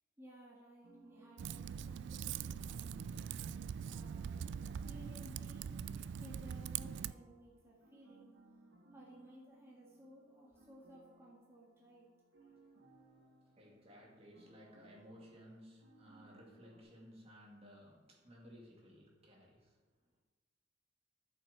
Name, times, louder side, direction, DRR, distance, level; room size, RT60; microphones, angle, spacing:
voice 1, 0.2-4.5 4.8-8.3 8.9-12.1, right 1 dB, 15° right, -5 dB, 2.1 m, -58 dB
sound 1, 0.8-16.8, right 2 dB, 80° right, 1.5 m, -65 dB
Typing, 1.4-7.1, right 7 dB, 65° right, 0.3 m, -43 dB
voice 2, 12.4-19.8, equal, 30° right, -2 dB, 2.4 m, -58 dB
13.5 x 7.4 x 4.3 m, 1.2 s
head